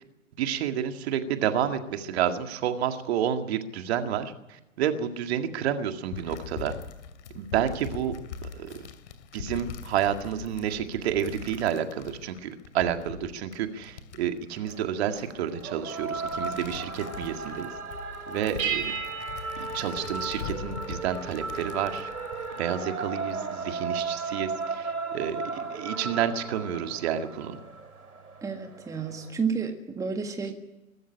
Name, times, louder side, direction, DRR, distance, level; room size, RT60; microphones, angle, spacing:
voice 1, 0.4-6.7 7.3-8.1 8.6-8.7 9.3-17.7 18.3-18.9 19.6-22.1 22.6-27.6, right 9 dB, 45° right, 7 dB, 2.1 m, -30 dB
sound 1, 6.1-23.7 24.2-24.6, left 7 dB, 50° left, 2.6 m, -43 dB
sound 2, 14.6-29.3, right 4 dB, 85° right, 2.7 m, -36 dB
sound 3, 18.6-20.8, right 8 dB, 65° right, 3.9 m, -34 dB
voice 2, 28.4-30.5, right 5 dB, 10° right, 6 dB, 1.7 m, -31 dB
22.5 x 13.5 x 10.0 m, 1.0 s
figure-of-eight pair, 120°, 43 cm